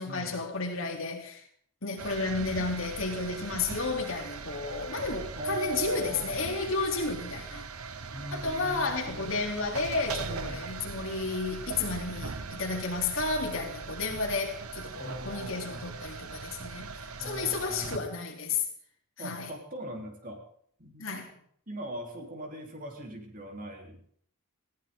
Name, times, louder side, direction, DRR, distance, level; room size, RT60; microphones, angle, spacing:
voice 1, 0.0-1.4 1.8-7.7 8.3-18.6 19.2-19.5 21.0-21.3, left 3 dB, 65° left, 3.3 m, -32 dB
sound 1, 2.0-18.0, right 4 dB, 90° right, 1.1 m, -40 dB
voice 2, 5.4-6.4 8.1-9.3 10.2-10.7 15.0-15.8 17.2-18.1 19.2-20.4 20.8-21.1 21.7-24.1, right 1 dB, 40° right, 3.5 m, -40 dB
20.5 x 15.5 x 3.8 m
head